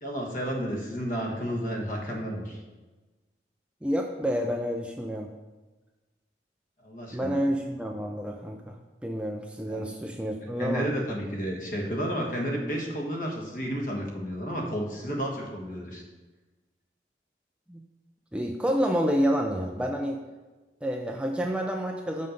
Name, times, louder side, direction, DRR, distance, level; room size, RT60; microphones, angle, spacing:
voice 1, 0.0-2.6 6.8-7.4 9.7-9.9 10.6-16.0, equal, 50° left, 0 dB, 1.5 m, -31 dB
voice 2, 3.8-5.3 7.1-8.8 9.0-10.9 17.7-17.8 18.3-20.2 20.8-22.3, equal, 5° right, 2 dB, 0.4 m, -29 dB
6.4 x 5.7 x 5.3 m, 1.2 s
head